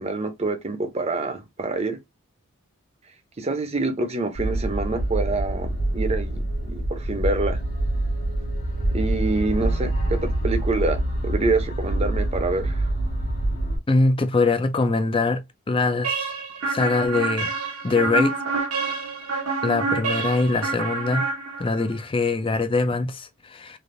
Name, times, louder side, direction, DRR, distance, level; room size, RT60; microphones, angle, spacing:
voice 1, 0.0-2.0 3.4-7.6 8.9-12.8, right 3 dB, 30° right, 0.6 m, -26 dB
sound 1, 4.4-13.8, right 1 dB, 45° left, 1.5 m, -25 dB
voice 2, 13.9-16.3 16.7-17.5 17.8-18.3 19.6-21.3 21.6-23.8, left 3 dB, 25° left, 0.4 m, -23 dB
sound 2, 16.0-21.9, right 3 dB, 85° right, 0.9 m, -27 dB
3.3 x 2.5 x 2.5 m
head